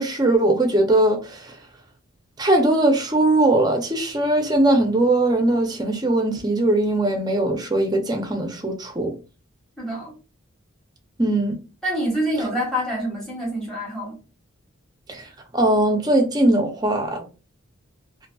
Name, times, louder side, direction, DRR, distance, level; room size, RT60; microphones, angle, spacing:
voice 1, 0.0-1.5 2.4-9.1 11.2-11.6 15.1-15.3 15.5-17.2, right 1 dB, 20° right, 0.5 m, -20 dB
voice 2, 9.8-10.1 11.8-14.2, equal, 5° left, 1.2 m, -26 dB
2.7 x 2.5 x 2.2 m
head